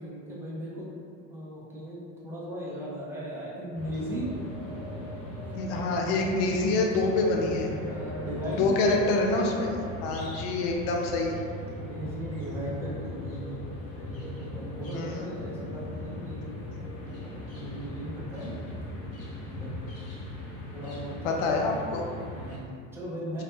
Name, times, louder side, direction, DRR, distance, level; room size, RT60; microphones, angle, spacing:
voice 1, 0.0-0.9 1.3-4.3 7.9-8.7 11.8-13.5 13.9-16.4 17.4-18.5 19.5-19.7 20.7-21.6 22.3-23.4, equal, 5° right, -7 dB, 0.4 m, -37 dB
sound 1, 3.7-22.6, left 1 dB, 40° left, 0.7 m, -38 dB
voice 2, 5.5-7.7 8.6-11.4 14.9-15.3 21.2-22.1, left 3 dB, 90° left, 0 dB, 0.6 m, -26 dB
2.7 x 2.1 x 3.3 m, 2.4 s
cardioid pair, 150°, 37 cm